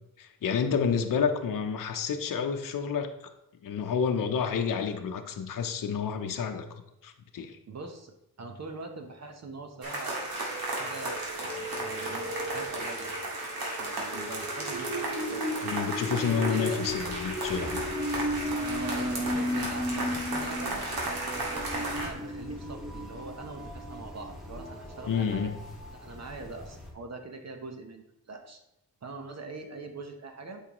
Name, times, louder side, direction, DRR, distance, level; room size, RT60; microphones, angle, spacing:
voice 1, 0.2-3.1 3.6-6.7 7.0-7.6 15.6-17.9 25.1-25.5, left 6 dB, 55° left, 5 dB, 0.8 m, -29 dB
voice 2, 7.7-10.2 10.6-13.2 13.6-15.6 16.1-16.8 18.7-20.9 21.7-25.5 25.9-28.6 29.0-30.6, right 3 dB, 40° right, 5 dB, 0.9 m, -43 dB
sound 1, 8.7-8.9 10.0-25.9 26.4-26.5 26.6-26.7, left 1 dB, 20° right, 1.6 m, -36 dB
sound 2, 9.8-22.1, right 2 dB, 65° right, 2.1 m, -35 dB
sound 3, 16.8-26.9, left 1 dB, ahead, 2.4 m, -45 dB
8.3 x 5.5 x 3.0 m, 0.88 s
cardioid pair, 95°, 39 cm